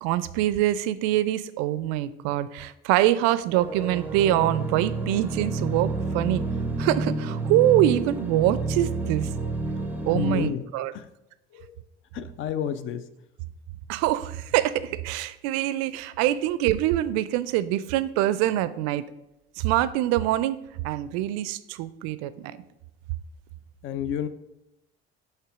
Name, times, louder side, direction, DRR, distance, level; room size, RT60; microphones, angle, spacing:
voice 1, 0.0-6.4 6.8-9.3 10.1-10.9 13.9-19.1 19.6-20.6 20.8-22.6, right 13 dB, 55° right, 16 dB, 0.4 m, -24 dB
sound 1, 3.5-10.5, right 3 dB, 5° right, 0.6 m, -29 dB
voice 2, 10.1-10.7 10.9-11.1 11.5-11.7 12.1-13.1 23.8-24.3, left 9 dB, 45° left, 13 dB, 0.5 m, -30 dB
5.6 x 3.4 x 5.8 m, 0.90 s
figure-of-eight pair, 55°, 30 cm